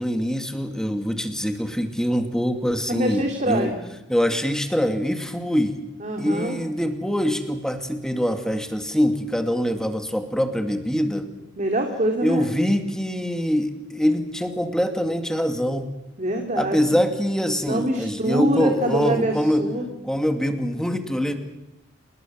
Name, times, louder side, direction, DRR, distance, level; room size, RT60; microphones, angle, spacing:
voice 1, 0.0-3.7 4.1-5.8 6.2-11.3 12.2-15.9 16.6-19.7 20.0-21.3, equal, 5° left, 6 dB, 2.4 m, -24 dB
voice 2, 2.9-3.8 6.0-6.6 11.6-12.5 16.2-16.8 17.7-19.9, right 1 dB, 40° right, 3 dB, 2.7 m, -24 dB
28.0 x 20.5 x 7.5 m, 0.92 s
head